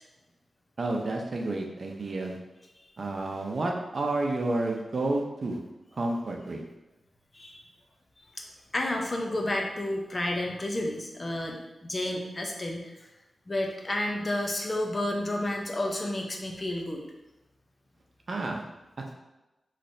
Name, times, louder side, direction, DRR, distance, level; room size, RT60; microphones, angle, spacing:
voice 1, 0.8-2.4 3.0-5.6 6.0-6.6 18.3-18.6, right 2 dB, 50° right, 1 dB, 0.7 m, -30 dB
voice 2, 8.7-13.1 13.5-17.0, left 1 dB, 30° left, 1 dB, 0.8 m, -31 dB
6.1 x 3.2 x 2.7 m, 1.0 s
wide cardioid pair, 85°, 0 cm